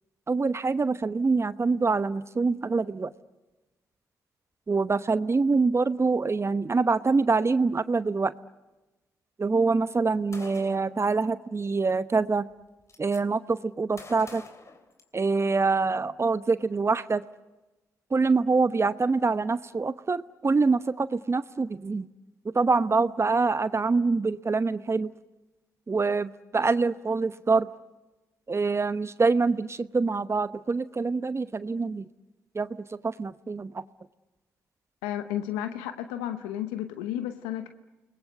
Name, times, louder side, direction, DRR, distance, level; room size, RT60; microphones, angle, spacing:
voice 1, 0.3-3.1 4.7-8.3 9.4-12.4 13.0-14.4 15.1-17.2 18.1-22.1 22.4-25.1 25.9-27.7 28.5-32.1 32.5-33.8, right 4 dB, 35° right, 14 dB, 0.9 m, -25 dB
Gunshot gunfire, 10.3-11.0 12.1-12.2 12.5-13.2 14.0-15.5, left 3 dB, 40° left, 3.4 m, -47 dB
voice 2, 35.0-37.7, left 11 dB, 90° left, 9 dB, 0.9 m, -32 dB
29.5 x 21.0 x 8.0 m, 1.1 s
hypercardioid pair, 45°, 8 cm